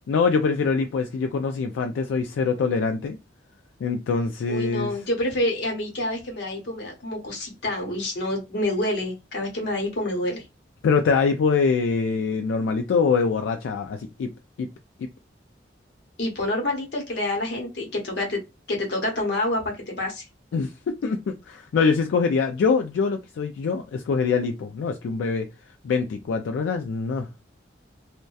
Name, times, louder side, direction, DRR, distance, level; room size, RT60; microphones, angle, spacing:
voice 1, 0.1-3.2 3.8-5.0 10.8-14.3 14.6-14.7 20.5-20.7 21.0-25.5 25.8-27.3, left 5 dB, 90° left, 0.3 m, -24 dB
voice 2, 4.5-10.4 16.2-18.4 18.7-20.2, left 1 dB, 65° left, 0.9 m, -27 dB
2.6 x 2.1 x 2.2 m
head